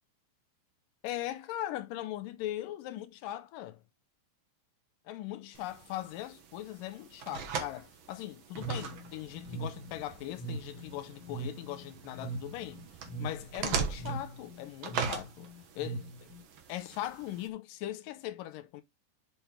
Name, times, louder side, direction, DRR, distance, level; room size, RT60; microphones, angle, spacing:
voice 1, 1.0-3.8 5.1-12.8 13.2-16.0 16.7-18.8, left 13 dB, 75° left, 2.3 m, -40 dB
sound 1, 5.5-17.5, right 6 dB, 80° right, 1.1 m, -41 dB
sound 2, 8.5-16.4, right 2 dB, 50° left, 1.4 m, -41 dB
6.9 x 5.9 x 3.3 m
omnidirectional pair, 4.2 m